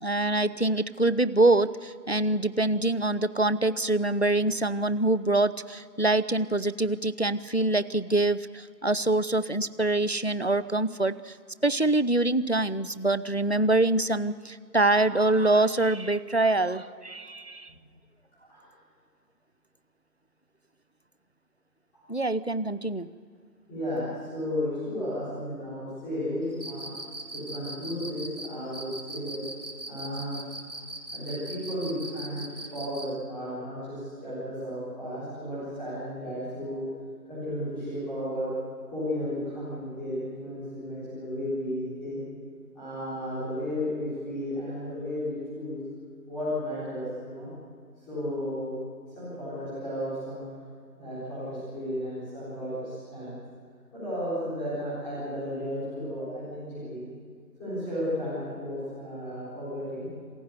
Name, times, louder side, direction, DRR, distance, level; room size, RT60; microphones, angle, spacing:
voice 1, 0.0-11.3 11.6-17.7 22.1-23.1, right 2 dB, 45° left, 16 dB, 0.5 m, -25 dB
voice 2, 23.7-26.9 27.3-29.4 29.9-30.3 31.1-36.8 37.3-38.5 38.8-42.2 42.7-45.8 46.3-47.5 48.1-48.7 49.2-50.4 51.0-53.3 53.9-57.0 57.6-60.1, equal, 5° left, -13 dB, 3.8 m, -33 dB
Cricket, 26.5-33.1, right 1 dB, 90° right, 3.2 m, -39 dB
27.0 x 15.5 x 8.1 m, 2.1 s
figure-of-eight pair, 165°, 49 cm